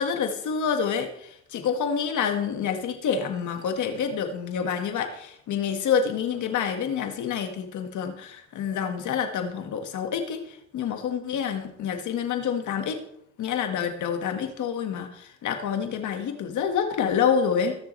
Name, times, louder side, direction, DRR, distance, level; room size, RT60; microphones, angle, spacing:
voice 1, 0.0-10.4 10.7-13.0 13.4-17.8, left 7 dB, 75° left, 6 dB, 1.8 m, -27 dB
21.5 x 7.1 x 3.3 m, 0.73 s
cardioid pair, 90°, 30 cm